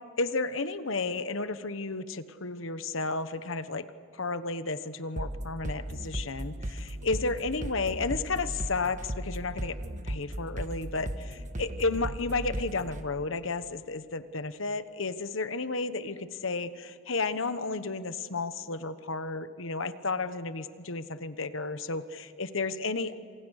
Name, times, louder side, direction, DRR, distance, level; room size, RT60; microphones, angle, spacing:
voice 1, 0.2-3.8 4.1-9.8 10.0-23.2, left 3 dB, 70° left, 12 dB, 1.2 m, -32 dB
sound 1, 5.2-13.0, right 1 dB, 35° right, 1.4 m, -36 dB
28.5 x 27.0 x 6.5 m, 2.2 s
head